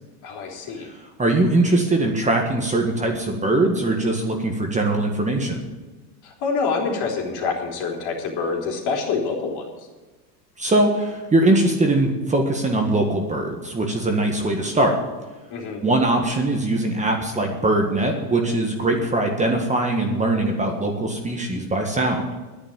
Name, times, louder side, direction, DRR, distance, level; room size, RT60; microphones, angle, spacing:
voice 1, 0.2-0.9 6.2-9.9 15.5-15.8, left 4 dB, 50° left, 0 dB, 3.5 m, -26 dB
voice 2, 1.2-5.6 10.6-15.0 15.8-22.2, right 2 dB, 15° right, 2 dB, 1.6 m, -21 dB
10.0 x 9.7 x 8.5 m, 1.2 s
supercardioid pair, 115°, 50 cm